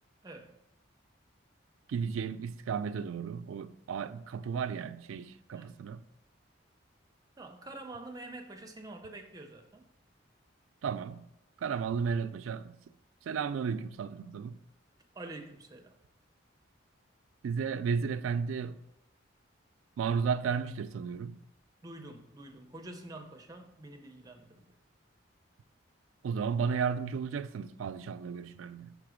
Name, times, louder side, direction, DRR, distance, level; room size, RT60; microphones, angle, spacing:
voice 1, 0.2-0.6 5.5-5.7 7.4-9.9 15.1-16.0 21.8-24.7, right 2 dB, 20° right, 0.5 m, -47 dB
voice 2, 1.9-6.0 10.8-11.3 11.6-12.8 13.3-14.6 17.4-18.8 20.0-21.4 26.2-28.9, right 6 dB, 80° right, 0.3 m, -33 dB
5.9 x 3.4 x 4.9 m
head